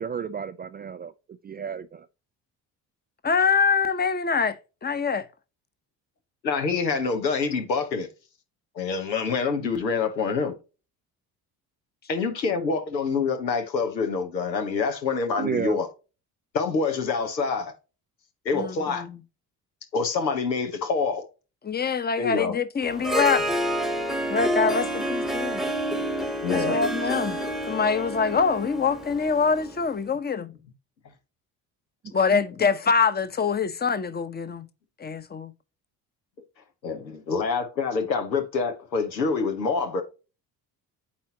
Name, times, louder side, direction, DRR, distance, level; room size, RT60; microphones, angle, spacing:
voice 1, 0.0-2.1 15.4-15.8, right 7 dB, 20° right, 0.3 m, -32 dB
voice 2, 3.2-5.3 18.5-19.2 21.6-23.4 24.3-25.6 26.5-27.4 27.7-30.5 32.1-34.6 35.0-35.5, left 5 dB, 20° left, 0.9 m, -24 dB
voice 3, 6.4-8.1 8.7-10.6 12.1-15.9 16.5-17.7 18.4-19.0 19.9-21.2 22.2-22.6 26.4-26.8 36.8-40.0, left 4 dB, 85° left, 1.1 m, -26 dB
Harp, 22.8-29.9, right 1 dB, ahead, 1.1 m, -28 dB
8.6 x 4.3 x 2.8 m
figure-of-eight pair, 50°, 50 cm